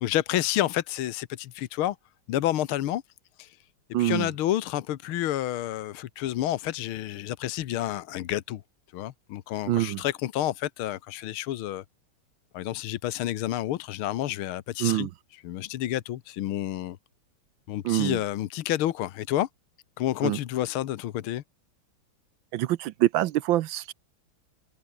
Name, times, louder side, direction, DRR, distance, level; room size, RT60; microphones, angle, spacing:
voice 1, 0.0-2.0 2.3-3.0 3.4-3.6 4.0-8.6 8.9-11.8 12.5-15.1 15.4-17.0 17.7-19.5 20.0-21.4, left 13 dB, 80° left, 1.8 m, -29 dB
voice 2, 3.9-4.3 9.7-10.0 14.8-15.1 17.8-18.2 20.2-20.4 22.5-23.9, right 14 dB, 75° right, 1.3 m, -25 dB
omnidirectional pair, 2.3 m